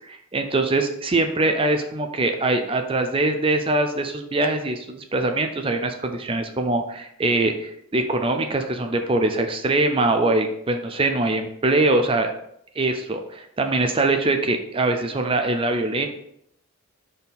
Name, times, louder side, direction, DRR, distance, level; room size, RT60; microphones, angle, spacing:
voice 1, 0.0-12.3 12.8-16.1, right 2 dB, 25° right, 6 dB, 0.5 m, -23 dB
5.2 x 4.4 x 4.1 m, 0.73 s
head